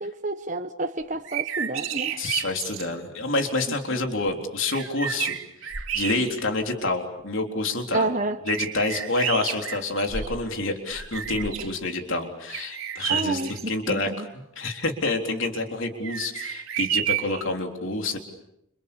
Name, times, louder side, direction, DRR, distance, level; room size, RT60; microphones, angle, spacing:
voice 1, 0.0-2.2 3.9-4.0 7.9-8.4 13.1-14.2, right 2 dB, 35° right, 6 dB, 1.2 m, -29 dB
sound 1, 1.1-2.9 4.3-4.4 4.7-6.6 7.2-7.3 8.5-10.5 10.9-11.8 12.5-13.6 16.0-17.4, right 10 dB, 75° right, 2.9 m, -31 dB
voice 2, 2.2-5.4 5.6-8.1 8.5-18.2, left 2 dB, 60° left, 4 dB, 3.7 m, -28 dB
30.0 x 28.5 x 7.0 m, 0.80 s
head